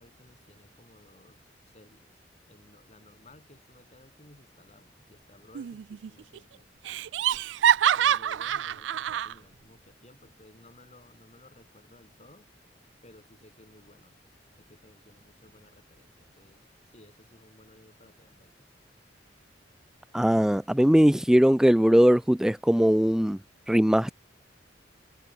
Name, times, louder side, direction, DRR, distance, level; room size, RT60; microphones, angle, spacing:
voice 1, 0.0-2.2 2.5-7.0 7.9-12.5 13.0-14.2 14.6-18.7, left 1 dB, 40° left, 7.1 m, -57 dB
Laughter, 5.5-6.1 6.4-6.5 6.9-9.3, right 10 dB, 90° right, 0.4 m, -25 dB
voice 2, 20.1-23.4 23.7-24.1, equal, 5° right, 0.4 m, -20 dB
head